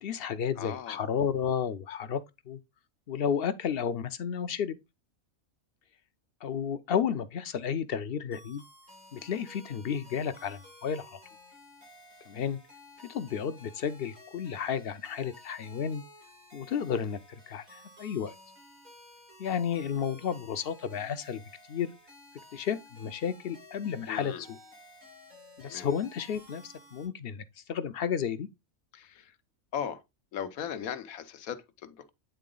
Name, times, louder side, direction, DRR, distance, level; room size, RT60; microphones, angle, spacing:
voice 1, 0.0-2.6 3.1-4.8 6.4-8.6 9.1-11.2 12.3-12.6 13.1-16.0 16.5-17.2 17.5-18.3 19.4-21.4 21.7-21.9 22.5-24.6 25.6-28.5, left 7 dB, 60° left, 0.7 m, -32 dB
voice 2, 0.6-1.0 24.1-24.5 25.6-25.9 28.9-29.4 29.7-30.0 30.3-32.1, left 8 dB, 85° left, 1.2 m, -38 dB
sound 1, 8.3-27.1, left 1 dB, 85° right, 4.5 m, -54 dB
9.2 x 3.8 x 3.8 m
omnidirectional pair, 1.4 m